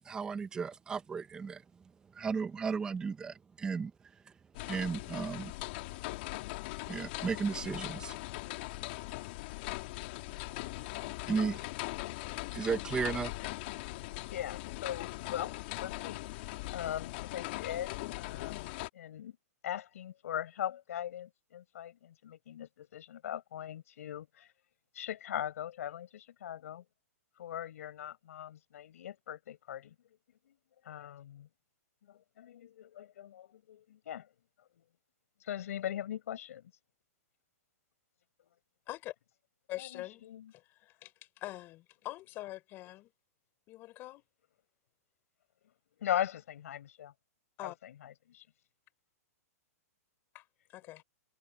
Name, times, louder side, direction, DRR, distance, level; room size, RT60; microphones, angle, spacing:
voice 1, 0.0-1.6 2.1-3.9 4.7-5.5 6.9-8.2 11.3-11.6 12.5-13.3, right 5 dB, 10° right, 0.8 m, -34 dB
sound 1, 4.5-18.9, left 20 dB, 40° left, 2.6 m, -40 dB
voice 2, 14.3-16.2 16.7-19.4 19.6-24.5 24.9-26.8 27.4-29.9 30.5-30.6 30.8-31.5 32.0-34.3 34.8-34.9 35.4-36.7 39.8-40.5 46.0-47.1 47.6-48.4, left 11 dB, 65° left, 6.0 m, -40 dB
voice 3, 39.7-40.2 40.8-41.1 41.4-43.1 43.7-44.2 47.6-47.8 50.3-50.4 50.7-51.0, left 17 dB, 25° left, 4.8 m, -43 dB
hypercardioid pair, 165°, 9 cm